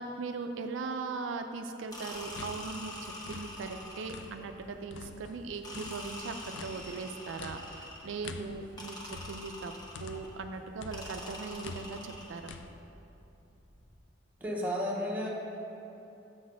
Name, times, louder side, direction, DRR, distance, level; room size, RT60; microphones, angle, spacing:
voice 1, 0.0-9.7 10.0-12.5, right 4 dB, 80° right, 6 dB, 0.4 m, -39 dB
sound 1, 1.9-14.0, equal, 40° left, 1.3 m, -59 dB
sound 2, 1.9-4.5 5.6-8.2 8.8-10.3 10.9-12.5, left 1 dB, 20° left, 1.0 m, -45 dB
sound 3, 2.2-4.6 4.9-10.5 10.8-12.7, left 4 dB, 65° left, 0.4 m, -47 dB
voice 2, 14.4-15.3, equal, 10° right, -4 dB, 1.0 m, -32 dB
7.6 x 4.1 x 6.3 m, 2.9 s
head